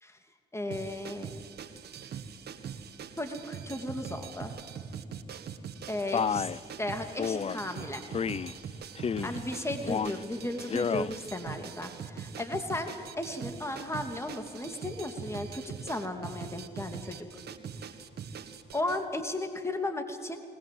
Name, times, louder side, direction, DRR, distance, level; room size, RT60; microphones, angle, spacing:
voice 1, 0.5-1.3 3.2-4.5 5.9-6.5 6.8-8.0 9.2-17.3 18.7-20.4, left 1 dB, 15° left, 5 dB, 2.9 m, -35 dB
sound 1, 0.7-19.0, right 7 dB, 65° right, 1.7 m, -42 dB
Male speech man speaking, 6.1-6.6 7.2-7.6 8.1-8.5 9.0-9.4 9.8-10.2 10.6-11.1, left 6 dB, 35° left, 0.5 m, -30 dB
21.0 x 20.0 x 7.9 m, 2.2 s
supercardioid pair, 65°, 18 cm